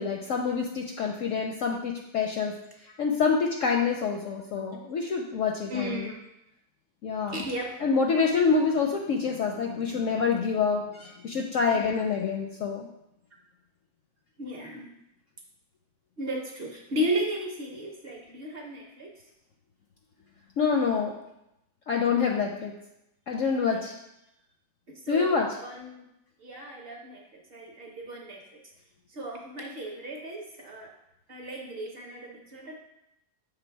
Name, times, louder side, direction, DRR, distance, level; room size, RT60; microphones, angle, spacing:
voice 1, 0.0-2.5 3.0-6.1 7.0-7.4 7.8-12.9 20.6-21.1 21.9-22.7 23.3-23.9 25.1-25.5, left 5 dB, 70° left, 2 dB, 0.8 m, -26 dB
voice 2, 5.7-6.2 7.3-7.8 11.7-12.0 14.4-14.9 16.2-19.1 23.7-23.8 24.9-26.1 26.4-28.6 29.1-30.9 31.3-32.7, equal, 50° right, 0 dB, 0.8 m, -35 dB
6.1 x 3.4 x 4.5 m, 0.85 s
omnidirectional pair, 1.7 m